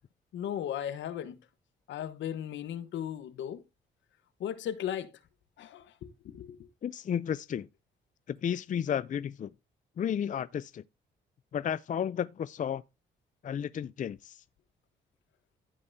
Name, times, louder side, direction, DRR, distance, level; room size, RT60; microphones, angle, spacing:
voice 1, 0.3-1.4 1.9-3.6 4.4-5.1 5.6-6.6, left 10 dB, 75° left, 1.1 m, -36 dB
voice 2, 6.8-7.7 8.3-9.5 10.0-10.8 11.5-12.8 13.4-14.4, left 8 dB, 40° left, 0.5 m, -32 dB
16.0 x 5.3 x 2.7 m
supercardioid pair, 60°, 19 cm